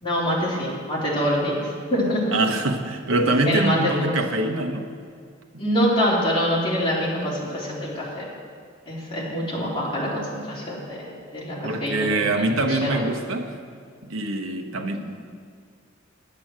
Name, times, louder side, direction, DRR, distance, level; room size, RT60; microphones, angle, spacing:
voice 1, 0.0-2.3 3.4-4.2 5.6-8.2 8.9-13.0, equal, 25° left, -6 dB, 3.0 m, -25 dB
voice 2, 2.3-4.9 5.5-5.6 11.6-13.5 14.1-15.0, right 2 dB, 90° right, 4 dB, 1.1 m, -24 dB
9.9 x 7.7 x 7.4 m, 2.1 s
head